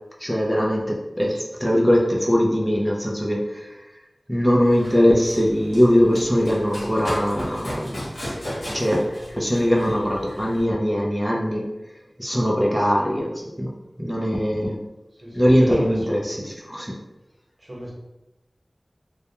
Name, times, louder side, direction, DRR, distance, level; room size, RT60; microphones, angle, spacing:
voice 1, 0.2-3.7 4.3-8.0 8.7-9.1 9.3-11.7 12.2-13.3 13.6-13.7 14.0-14.8 15.3-17.0, equal, ahead, -3 dB, 0.5 m, -21 dB
Run, 4.6-10.6, equal, 85° left, 1.0 m, -35 dB
voice 2, 15.2-16.2 17.6-17.9, equal, 60° right, -5 dB, 0.9 m, -34 dB
2.3 x 2.1 x 2.8 m, 0.97 s
wide cardioid pair, 40°, 0 cm